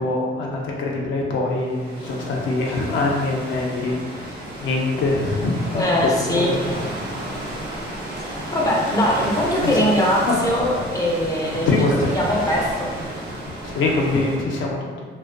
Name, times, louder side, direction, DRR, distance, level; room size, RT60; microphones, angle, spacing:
voice 1, 0.0-6.4 9.6-9.9 10.3-10.4 11.7-12.1 13.1-13.3 13.6-15.0, left 2 dB, 75° left, -2 dB, 0.5 m, -24 dB
sound 1, 1.5-14.4, right 1 dB, 50° right, 0.6 m, -32 dB
voice 2, 5.7-6.5 8.5-11.7 12.1-12.9, left 1 dB, 20° left, -3 dB, 0.4 m, -21 dB
2.4 x 2.1 x 2.4 m, 1.5 s
cardioid pair, 90°, 20 cm